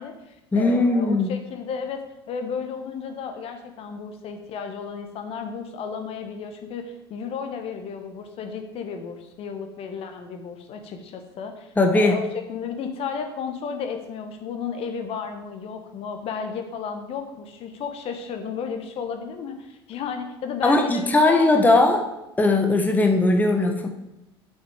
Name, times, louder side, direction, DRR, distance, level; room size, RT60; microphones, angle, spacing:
voice 1, 0.0-2.0 2.3-12.2 12.5-21.9, left 6 dB, 50° left, 6 dB, 1.3 m, -33 dB
voice 2, 0.5-1.3 11.8-12.2 20.6-22.0 22.4-23.9, left 2 dB, 15° left, 3 dB, 1.0 m, -19 dB
7.3 x 6.0 x 4.8 m, 0.92 s
hypercardioid pair, 75°, 13 cm